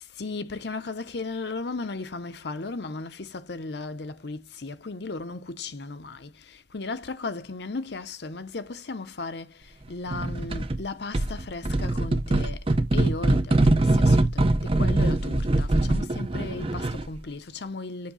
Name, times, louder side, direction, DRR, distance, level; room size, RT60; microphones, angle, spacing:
voice 1, 0.0-12.7 12.9-18.1, left 3 dB, 65° left, 0.8 m, -36 dB
sound 1, 10.1-10.8 11.1-17.2, right 2 dB, 30° right, 0.6 m, -23 dB
7.6 x 2.7 x 5.5 m
head